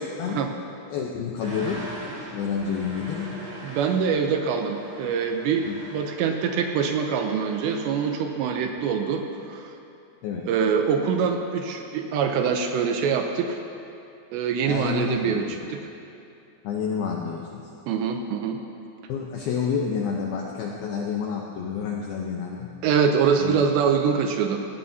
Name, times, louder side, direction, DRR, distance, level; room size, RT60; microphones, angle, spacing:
voice 1, 0.9-1.8 2.3-3.4 5.7-5.8 10.2-10.4 14.7-15.6 16.6-17.6 19.1-22.7 23.4-23.6, left 6 dB, 80° left, -1 dB, 2.2 m, -29 dB
sound 1, 1.4-8.3, right 1 dB, 55° right, 5.5 m, -41 dB
voice 2, 3.6-5.7 5.9-9.7 10.5-13.6 14.3-15.8 17.9-18.6 22.8-24.6, right 6 dB, 80° right, 4 dB, 2.7 m, -24 dB
17.5 x 16.5 x 2.8 m, 2.7 s
omnidirectional pair, 5.4 m